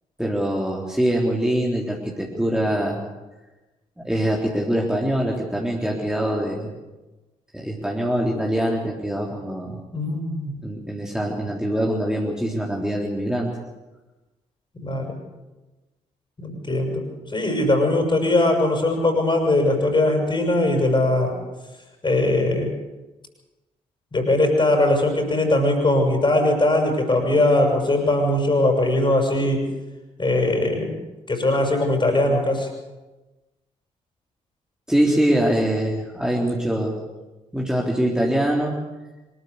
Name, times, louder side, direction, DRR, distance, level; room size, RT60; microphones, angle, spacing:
voice 1, 0.2-3.0 4.0-6.7 7.5-9.8 10.6-13.5 34.9-37.0 37.5-38.8, right 1 dB, 5° right, -2 dB, 3.7 m, -23 dB
voice 2, 9.9-10.6 14.8-15.2 16.4-21.3 22.0-22.7 24.1-29.6 30.2-31.0 31.3-32.7, left 1 dB, 25° left, 3 dB, 6.7 m, -20 dB
25.0 x 14.0 x 8.4 m, 1.1 s
figure-of-eight pair, 40°, 18 cm